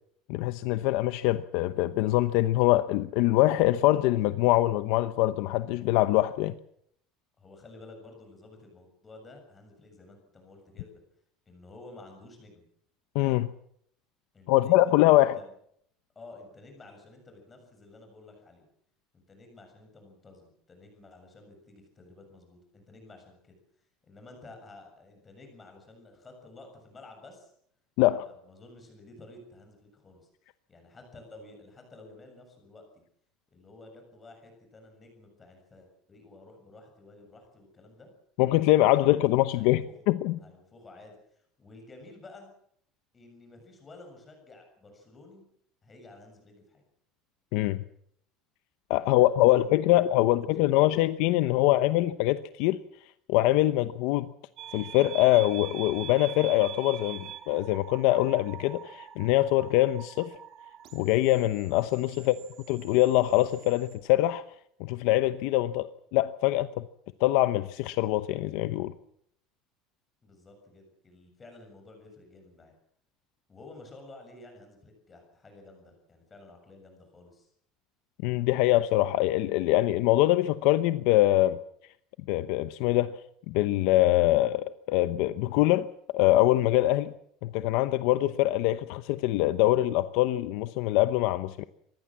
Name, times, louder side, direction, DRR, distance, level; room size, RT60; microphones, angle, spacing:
voice 1, 0.3-6.5 13.1-13.5 14.5-15.3 28.0-28.3 38.4-40.4 47.5-47.8 48.9-52.8 53.3-54.3 54.7-60.3 60.9-62.3 62.7-64.4 64.8-66.9 67.2-68.9 78.2-81.6 82.3-83.2 83.5-85.9 86.1-87.1 87.4-91.6, left 16 dB, 60° left, 0.9 m, -24 dB
voice 2, 7.4-11.0 11.5-12.7 14.3-15.5 16.2-18.6 19.1-23.6 24.1-27.5 28.0-30.3 30.7-33.0 33.5-38.1 39.0-39.9 40.4-42.5 43.1-45.4 45.8-46.8 49.0-51.0 51.4-52.1 62.2-62.4 70.2-72.7 73.5-77.5, left 2 dB, 15° left, 7.1 m, -52 dB
sound 1, 54.6-63.9, right 11 dB, 40° right, 3.3 m, -44 dB
25.0 x 20.0 x 7.4 m
cardioid pair, 180°, 0 cm